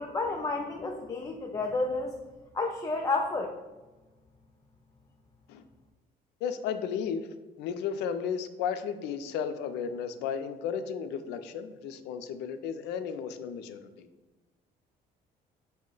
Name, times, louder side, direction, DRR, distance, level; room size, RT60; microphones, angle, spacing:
voice 1, 0.0-2.1 2.5-3.5, left 3 dB, 20° left, 1 dB, 0.3 m, -31 dB
voice 2, 6.4-7.3 7.6-14.1, left 7 dB, 85° left, 10 dB, 0.4 m, -34 dB
5.7 x 2.1 x 3.7 m, 1.2 s
cardioid pair, 110°, 17 cm